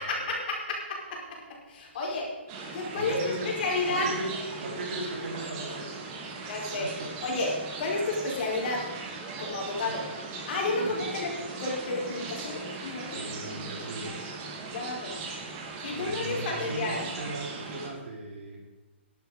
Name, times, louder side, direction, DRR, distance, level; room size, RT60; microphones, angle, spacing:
voice 1, 0.0-2.3 2.7-3.2 3.4-4.1 6.5-6.9 7.2-8.8 9.4-10.1 10.5-11.3 11.6-13.2 14.7-15.3 15.8-17.0, left 2 dB, 50° left, -1 dB, 4.8 m, -31 dB
sound 1, 2.5-17.9, right 3 dB, 35° right, 2.7 m, -39 dB
voice 2, 2.9-3.5 3.9-6.1 6.4-7.1 9.8-9.9 10.7-11.1 13.1-14.4 15.9-18.6, right 2 dB, 70° right, -1 dB, 4.5 m, -38 dB
12.5 x 11.5 x 5.1 m, 1.2 s
hypercardioid pair, 140°, 6 cm